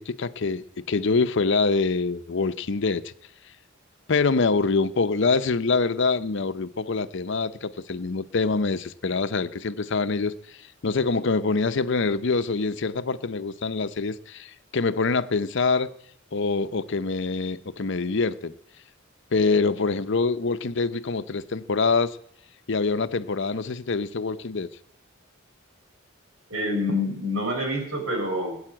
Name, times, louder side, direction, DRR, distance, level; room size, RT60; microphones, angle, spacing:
voice 1, 0.0-3.1 4.1-10.3 10.8-15.9 16.3-18.5 19.3-22.2 22.7-24.7, left 4 dB, 60° left, 0.7 m, -25 dB
voice 2, 26.5-28.6, left 1 dB, 75° right, 5.1 m, -27 dB
19.0 x 8.7 x 8.8 m
head